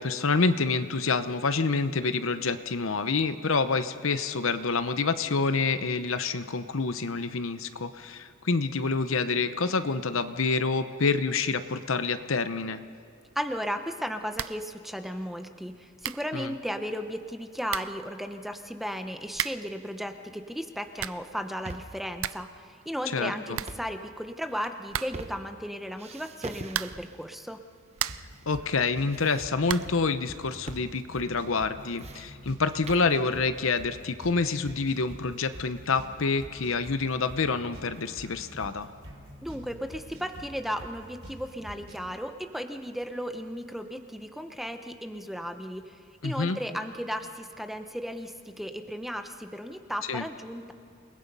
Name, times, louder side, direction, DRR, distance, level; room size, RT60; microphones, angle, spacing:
voice 1, 0.0-12.8 16.3-16.5 23.1-23.6 28.5-38.9 46.2-46.6 50.1-50.2, left 4 dB, 65° left, 11 dB, 0.9 m, -27 dB
voice 2, 13.3-27.6 39.4-50.7, equal, ahead, 7 dB, 0.9 m, -35 dB
sound 1, 14.3-14.7 15.0-15.1 15.7-15.8 16.0-16.3 17.3-17.4 17.7-18.0 19.3-19.8 20.7-21.3 21.7-21.8 22.0-22.6 22.8-22.9 23.2-23.3 23.5-24.3 24.9-25.4 26.7-27.2 27.6-28.4 29.6-30.0, right 11 dB, 65° right, 0.5 m, -35 dB
sound 2, 21.3-22.1 23.5-24.0 24.5-25.7 26.0-27.3 28.0-28.6 28.8-29.9 30.7-30.9 31.2-31.3 31.7-33.2, right 2 dB, 30° right, 0.9 m, -44 dB
sound 3, 28.1-42.1, right 1 dB, 80° right, 3.2 m, -47 dB
29.0 x 20.0 x 5.5 m, 2.3 s
head